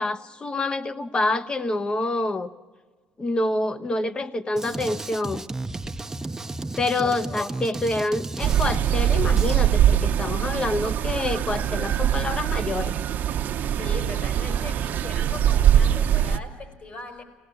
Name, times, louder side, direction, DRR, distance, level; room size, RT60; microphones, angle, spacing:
voice 1, 0.0-2.5 3.2-5.4 6.8-12.9, left 2 dB, 25° left, 12 dB, 0.9 m, -27 dB
Drum kit, 4.6-9.6, right 2 dB, 15° right, 0.7 m, -33 dB
voice 2, 6.9-7.5 13.8-17.2, left 3 dB, 45° left, 4 dB, 5.1 m, -39 dB
sound 1, 8.4-16.4, right 10 dB, 60° right, 0.9 m, -22 dB
18.5 x 18.0 x 8.2 m, 1.4 s
cardioid pair, 90°, 3 cm